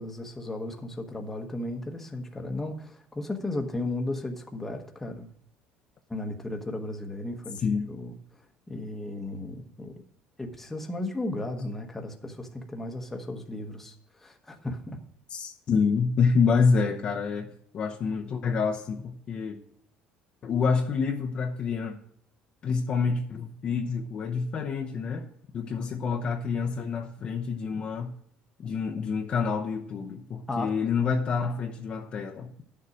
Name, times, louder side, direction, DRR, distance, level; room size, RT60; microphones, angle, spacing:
voice 1, 0.0-5.3 6.1-8.1 8.7-9.9 10.4-15.0 30.5-30.7, left 2 dB, 10° left, 1.1 m, -35 dB
voice 2, 15.3-19.6 20.4-21.9 22.6-25.3 25.5-28.1 28.6-32.5, left 5 dB, 35° left, 0.8 m, -27 dB
11.5 x 6.9 x 4.9 m
cardioid pair, 155°, 3 cm